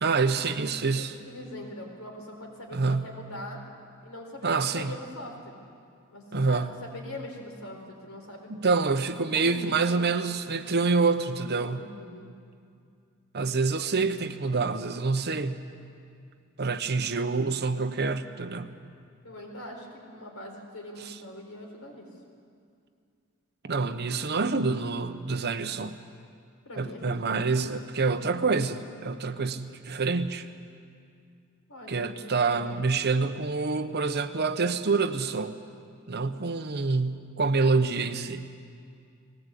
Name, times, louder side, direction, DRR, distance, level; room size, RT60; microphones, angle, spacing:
voice 1, 0.0-1.1 2.7-3.1 4.4-5.0 6.3-6.7 8.5-11.9 13.3-15.6 16.6-18.7 23.6-26.0 26.8-30.5 31.9-35.5 36.1-38.5, right 4 dB, 50° right, 10 dB, 0.9 m, -27 dB
voice 2, 0.9-3.6 4.0-5.6 6.1-8.5 9.3-10.1 11.7-12.3 19.2-22.1 26.6-27.3 31.7-32.7, left 1 dB, 80° left, 0 dB, 4.2 m, -42 dB
19.5 x 18.0 x 8.4 m, 2.3 s
head